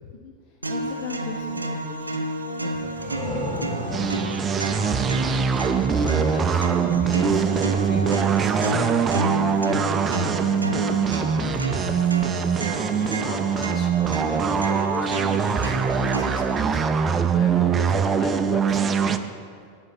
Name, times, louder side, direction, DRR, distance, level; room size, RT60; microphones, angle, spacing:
voice 1, 0.0-4.2 9.6-10.1 10.5-11.6, left 6 dB, 50° left, 2 dB, 0.6 m, -39 dB
sound 1, 0.6-16.6, right 2 dB, 90° right, 0.5 m, -31 dB
sound 2, 2.7-6.3, equal, 5° right, 1.5 m, -34 dB
sound 3, 3.9-19.2, right 6 dB, 25° right, 0.4 m, -23 dB
voice 2, 6.0-8.7 13.1-13.9 14.2-16.9 17.3-19.2, left 3 dB, 35° left, 3 dB, 1.1 m, -37 dB
8.7 x 6.7 x 4.2 m, 2.1 s
figure-of-eight pair, 90°, 0 cm